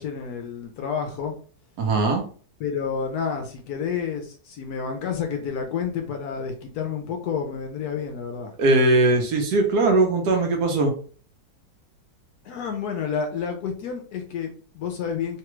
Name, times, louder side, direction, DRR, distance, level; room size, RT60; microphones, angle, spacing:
voice 1, 0.0-1.4 2.6-8.5 12.4-15.4, left 6 dB, 70° left, 3 dB, 1.0 m, -30 dB
voice 2, 1.8-2.2 8.6-10.9, right 2 dB, 65° right, 2 dB, 1.2 m, -20 dB
3.3 x 2.2 x 2.9 m, 0.42 s
omnidirectional pair, 1.9 m